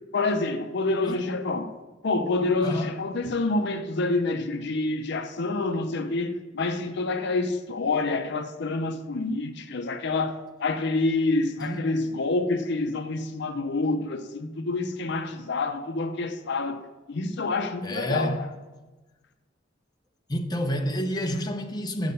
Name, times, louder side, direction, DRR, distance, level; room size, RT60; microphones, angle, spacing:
voice 1, 0.1-1.7 2.0-16.8 17.1-18.5, left 3 dB, 65° left, 0.6 m, -27 dB
voice 2, 2.6-2.9 11.6-11.8 17.8-18.4 20.3-22.1, equal, 20° left, 0.7 m, -28 dB
7.3 x 6.7 x 6.5 m
head